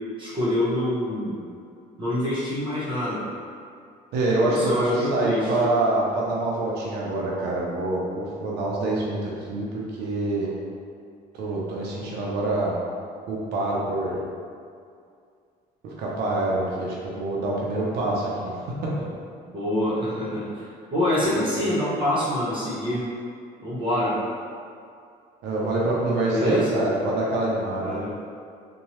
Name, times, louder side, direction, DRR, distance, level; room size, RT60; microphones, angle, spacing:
voice 1, 0.2-1.4 2.0-3.2 4.5-5.5 19.5-23.1 23.6-24.2 26.3-26.7 27.8-28.2, left 1 dB, 30° right, -9 dB, 0.9 m, -26 dB
voice 2, 4.1-10.5 11.4-12.8 13.3-14.2 15.8-18.5 18.8-19.1 21.4-21.5 25.4-28.0, right 2 dB, 80° right, -5 dB, 0.5 m, -25 dB
2.7 x 2.2 x 3.0 m, 2.3 s
cardioid pair, 110°, 17 cm